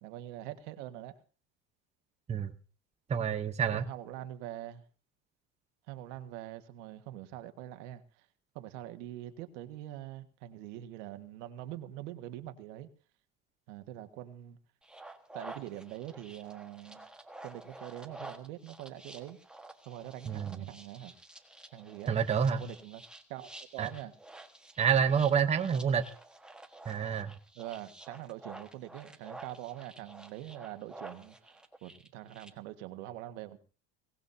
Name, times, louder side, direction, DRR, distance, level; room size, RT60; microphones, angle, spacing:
voice 1, 0.0-1.1 3.7-4.8 5.9-8.3 8.5-12.9 13.7-14.6 15.3-17.1 17.4-19.4 19.8-21.1 21.7-22.2 22.6-23.0 23.3-24.1 27.5-33.6, right 13 dB, 85° right, 1.7 m, -44 dB
voice 2, 3.1-3.8 20.3-20.6 22.1-22.6 23.8-23.9 24.8-26.0 26.9-27.3, right 7 dB, 20° right, 0.9 m, -28 dB
sound 1, 14.8-32.5, right 2 dB, ahead, 1.4 m, -50 dB
23.0 x 18.5 x 2.7 m
cardioid pair, 150°, 35 cm